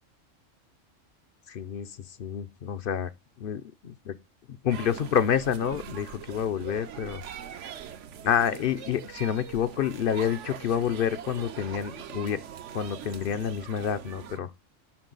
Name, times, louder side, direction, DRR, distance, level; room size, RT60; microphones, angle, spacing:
voice 1, 1.5-1.9 2.2-3.1 3.4-4.1 4.5-7.2 8.2-12.4 12.7-14.5, left 8 dB, 60° left, 0.6 m, -28 dB
sound 1, 4.7-14.4, right 9 dB, 70° right, 1.0 m, -42 dB
10.5 x 4.0 x 3.8 m
omnidirectional pair, 1.3 m